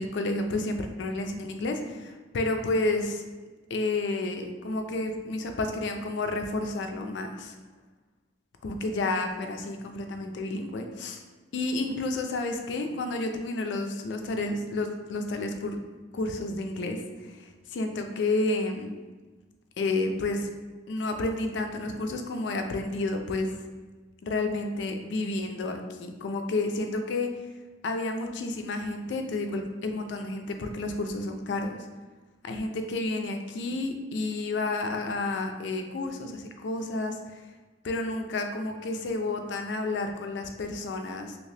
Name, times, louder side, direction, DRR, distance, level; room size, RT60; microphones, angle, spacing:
voice 1, 0.0-3.3 3.7-7.5 8.6-11.2 11.5-15.8 16.1-18.9 19.8-20.5 20.9-23.6 24.2-27.3 27.8-31.7 32.4-37.5 37.8-41.4, left 2 dB, 65° left, 5 dB, 0.3 m, -30 dB
2.8 x 2.7 x 3.2 m, 1.3 s
head